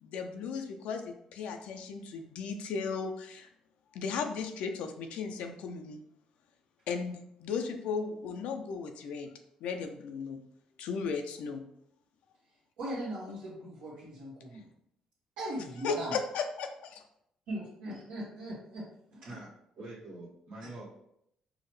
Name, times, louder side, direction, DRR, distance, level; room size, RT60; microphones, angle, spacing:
voice 1, 0.0-3.5 3.9-6.0 6.9-9.3 9.6-10.4 10.8-11.6 15.8-17.0, left 5 dB, 85° left, 5 dB, 0.4 m, -36 dB
voice 2, 12.8-14.7 15.4-16.2 17.5-19.4, right 1 dB, 90° right, -9 dB, 1.1 m, -39 dB
voice 3, 19.8-20.9, right 2 dB, 75° right, -6 dB, 1.4 m, -45 dB
4.6 x 2.1 x 3.1 m, 0.75 s
cardioid pair, 95°, 2 cm